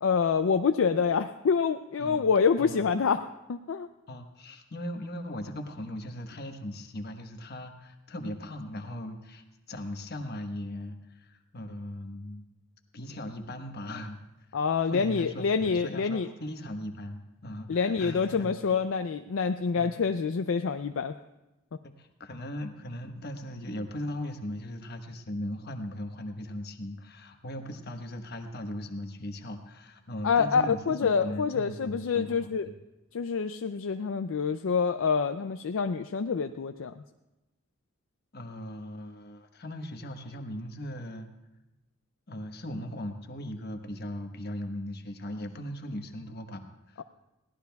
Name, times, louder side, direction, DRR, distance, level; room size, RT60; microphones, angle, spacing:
voice 1, 0.0-3.9 14.5-16.3 17.7-21.1 30.2-32.7 33.1-36.9 47.0-47.1, left 5 dB, 65° left, 8 dB, 0.4 m, -27 dB
voice 2, 2.6-2.9 4.1-12.4 12.9-14.2 14.8-18.5 19.8-19.9 21.8-32.7 38.3-41.3 42.3-47.0, left 1 dB, 50° left, 5 dB, 1.2 m, -38 dB
22.0 x 17.0 x 2.3 m, 0.98 s
head